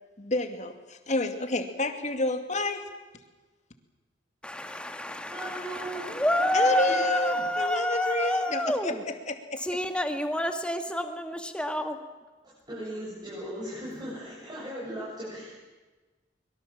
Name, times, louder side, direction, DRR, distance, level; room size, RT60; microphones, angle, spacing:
voice 1, 0.2-2.9 6.5-9.6, left 2 dB, 40° left, 6 dB, 2.3 m, -30 dB
voice 2, 4.4-9.0 9.6-12.0, left 1 dB, 5° left, 6 dB, 1.9 m, -28 dB
voice 3, 5.3-6.4 6.9-7.0 7.3-7.4 12.4-15.6, right 1 dB, 25° right, -6 dB, 7.9 m, -38 dB
24.0 x 22.5 x 7.6 m, 1.2 s
head